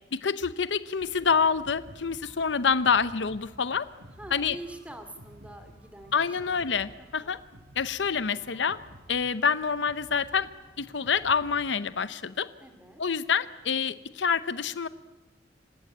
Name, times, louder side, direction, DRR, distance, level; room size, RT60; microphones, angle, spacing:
voice 1, 0.2-3.9 4.3-4.6 6.1-7.4 7.8-8.8 9.1-10.5 10.8-12.5 13.0-14.9, left 6 dB, 75° left, 14 dB, 0.8 m, -27 dB
sound 1, 1.0-11.8, equal, 85° right, 3.7 m, -52 dB
voice 2, 4.2-6.7 7.0-7.4 12.6-13.0, right 1 dB, 5° right, 8 dB, 2.6 m, -45 dB
27.0 x 16.0 x 9.7 m, 1.1 s
head